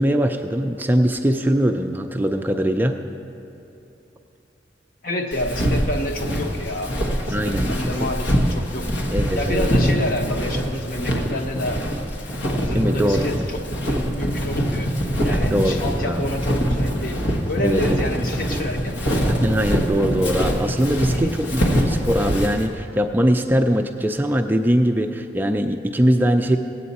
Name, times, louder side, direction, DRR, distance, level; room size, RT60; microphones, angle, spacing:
voice 1, 0.0-3.0 7.3-7.8 9.1-9.7 12.7-13.4 15.2-16.2 17.6-17.8 19.3-26.6, equal, 10° right, 5 dB, 0.3 m, -21 dB
voice 2, 5.0-7.0 7.2-9.0 9.4-12.1 12.6-14.9 15.2-17.2 17.5-19.0 21.1-21.3, left 1 dB, 50° left, 3 dB, 1.0 m, -28 dB
Walk footsteps, 5.3-22.7, equal, 90° left, 1.4 m, -24 dB
16.5 x 8.5 x 4.1 m, 2.9 s
head